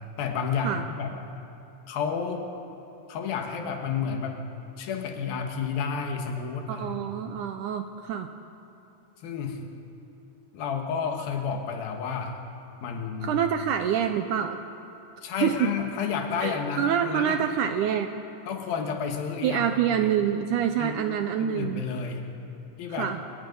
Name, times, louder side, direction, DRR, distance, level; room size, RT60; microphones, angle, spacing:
voice 1, 0.2-1.1 1.9-2.4 3.1-4.4 4.8-7.1 9.2-9.6 10.5-12.4 12.8-13.4 15.2-17.4 18.5-19.7 20.0-20.1 20.8-21.0 21.4-22.2 22.8-23.1, left 6 dB, 85° left, 4 dB, 3.3 m, -31 dB
voice 2, 6.7-8.3 13.2-14.6 15.4-15.5 16.4-18.1 19.4-21.8 22.9-23.2, right 9 dB, 75° right, 7 dB, 2.0 m, -26 dB
28.0 x 19.0 x 5.4 m, 2.9 s
omnidirectional pair, 4.1 m